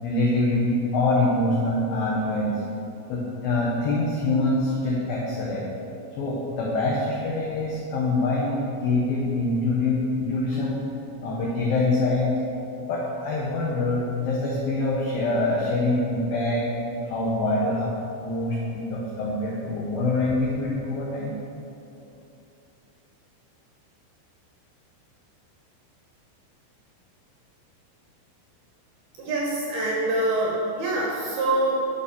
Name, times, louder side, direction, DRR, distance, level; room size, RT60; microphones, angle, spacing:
voice 1, 0.0-2.5 3.1-5.6 6.2-10.8 11.2-12.3 12.8-16.7 17.1-21.4, left 2 dB, 80° left, -3 dB, 2.1 m, -25 dB
voice 2, 29.2-31.8, right 2 dB, 65° right, -3 dB, 2.5 m, -25 dB
11.0 x 7.1 x 7.0 m, 2.9 s
omnidirectional pair, 5.9 m